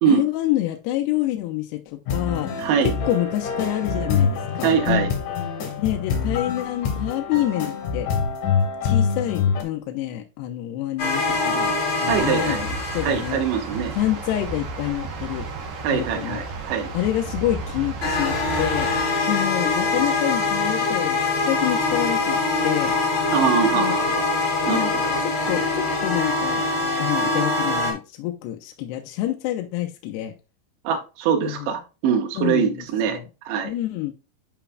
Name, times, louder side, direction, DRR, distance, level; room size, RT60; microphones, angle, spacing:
voice 1, 0.1-2.5 2.8-4.8 5.8-8.1 8.8-11.7 12.0-13.4 14.0-15.5 15.9-16.4 16.9-18.9 19.3-22.9 23.7-24.1 24.7-24.9 25.2-26.6 27.0-30.3 31.4-31.7 32.4-32.8 33.1-33.2 33.6-34.1, left 14 dB, 80° left, 2.6 m, -27 dB
sound 1, 2.1-9.6, left 6 dB, 60° left, 2.4 m, -25 dB
voice 2, 2.6-2.9 4.6-5.1 12.1-12.6 13.0-14.0 15.8-16.9 23.3-24.3 24.7-24.9 30.8-33.2 33.5-33.7, right 7 dB, 85° right, 3.3 m, -23 dB
sound 2, 11.0-13.7 18.0-27.9, left 3 dB, 40° left, 1.6 m, -23 dB
sound 3, 12.1-19.0, right 3 dB, 55° right, 2.7 m, -33 dB
10.0 x 5.0 x 2.2 m
omnidirectional pair, 5.2 m